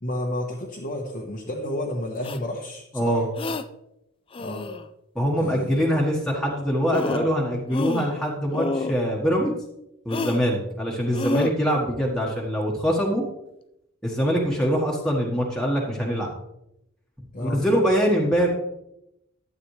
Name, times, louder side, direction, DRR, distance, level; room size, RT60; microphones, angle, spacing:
voice 1, 0.0-3.2 4.4-4.7 5.4-5.8 17.3-17.6, left 1 dB, 40° left, 1 dB, 1.1 m, -31 dB
sound 1, 2.2-2.4 3.4-3.6 4.3-4.9 6.5-6.6 6.9-7.4 7.7-8.2 8.5-9.0 10.1-10.4 11.1-11.5, left 2 dB, 25° left, 0.4 m, -28 dB
voice 2, 2.9-3.3 5.1-9.5 10.0-13.2 14.0-16.3 17.4-18.5, equal, 5° left, -3 dB, 1.4 m, -23 dB
12.0 x 8.7 x 3.2 m, 0.84 s
head